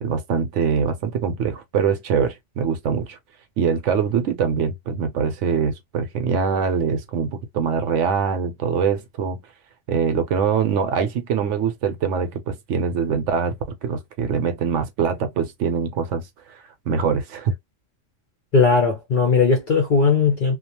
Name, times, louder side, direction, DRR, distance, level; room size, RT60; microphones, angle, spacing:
voice 1, 0.0-3.2 3.6-9.4 9.9-13.6 13.8-16.6 16.9-17.5, right 6 dB, 70° right, 0.9 m, -23 dB
voice 2, 18.5-20.6, left 4 dB, 55° left, 0.6 m, -18 dB
2.3 x 2.2 x 2.8 m
omnidirectional pair, 1.4 m